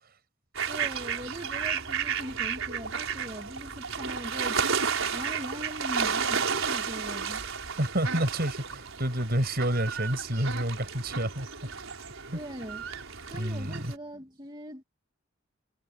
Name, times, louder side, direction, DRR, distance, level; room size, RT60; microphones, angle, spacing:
sound 1, 0.5-13.9, right 6 dB, 80° right, 4.5 m, -32 dB
voice 1, 0.7-7.4 12.3-12.8 13.2-14.8, equal, 25° right, 2.7 m, -41 dB
voice 2, 7.8-11.5 12.3-12.4 13.4-13.9, right 1 dB, 50° right, 6.5 m, -29 dB
head